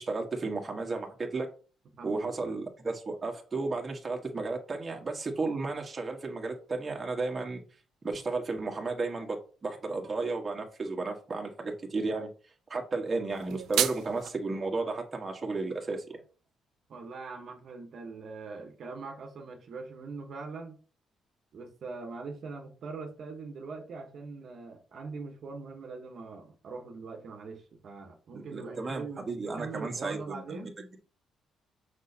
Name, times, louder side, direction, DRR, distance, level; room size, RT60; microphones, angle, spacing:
voice 1, 0.0-1.5 2.0-7.6 8.0-12.3 12.7-16.2 28.3-30.9, right 3 dB, 30° right, 1.5 m, -33 dB
voice 2, 1.9-2.5 16.9-20.8 21.5-30.7, right 4 dB, 60° right, 1.2 m, -42 dB
sound 1, 13.3-14.3, right 11 dB, 85° right, 0.5 m, -30 dB
6.2 x 5.5 x 2.8 m
cardioid pair, 90°, 0 cm